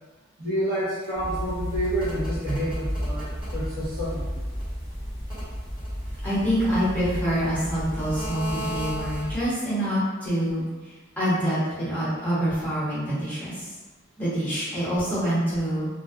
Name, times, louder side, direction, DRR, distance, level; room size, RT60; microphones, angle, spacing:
voice 1, 0.4-4.4, right 1 dB, 45° right, -8 dB, 0.7 m, -29 dB
sound 1, 1.2-9.5, equal, 20° right, 1.0 m, -32 dB
voice 2, 6.2-10.6 11.2-13.7 14.2-15.9, equal, 10° left, -11 dB, 0.9 m, -26 dB
2.4 x 2.2 x 2.5 m, 1.2 s
head